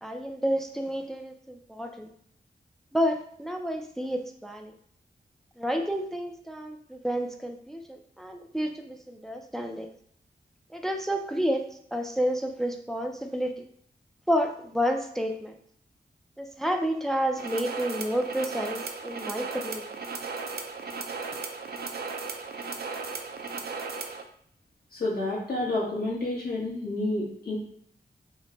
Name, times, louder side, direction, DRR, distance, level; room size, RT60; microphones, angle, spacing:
voice 1, 0.0-2.1 2.9-4.7 5.6-9.9 10.7-13.5 14.3-15.5 16.4-19.9, equal, ahead, 4 dB, 0.4 m, -30 dB
sound 1, 17.4-24.2, right 4 dB, 65° right, 0.4 m, -36 dB
voice 2, 24.9-27.6, left 2 dB, 60° left, -4 dB, 1.2 m, -29 dB
3.1 x 2.1 x 3.9 m, 0.64 s
cardioid pair, 55°, 17 cm